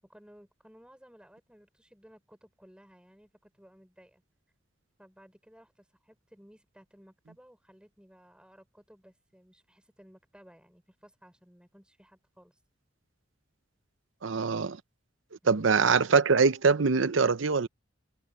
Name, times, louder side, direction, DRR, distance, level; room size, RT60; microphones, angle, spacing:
voice 1, 0.0-4.2 5.0-12.6 15.4-15.7, equal, 5° right, 6.0 m, -57 dB
voice 2, 14.2-14.8 15.4-17.7, right 5 dB, 90° right, 0.7 m, -23 dB
head